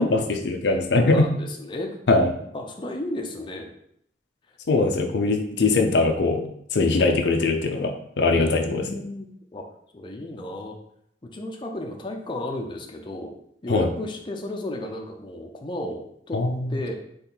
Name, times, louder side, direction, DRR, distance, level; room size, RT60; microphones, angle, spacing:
voice 1, 0.0-1.3 2.1-2.3 4.7-6.4 6.7-8.8 13.7-13.9 16.3-16.7, left 3 dB, 75° left, 4 dB, 0.6 m, -21 dB
voice 2, 0.9-2.0 2.5-3.7 8.3-9.7 9.9-10.8 11.2-13.3 13.6-16.4 16.7-16.9, left 1 dB, 30° left, 2 dB, 0.5 m, -33 dB
4.4 x 3.1 x 3.9 m, 0.70 s
head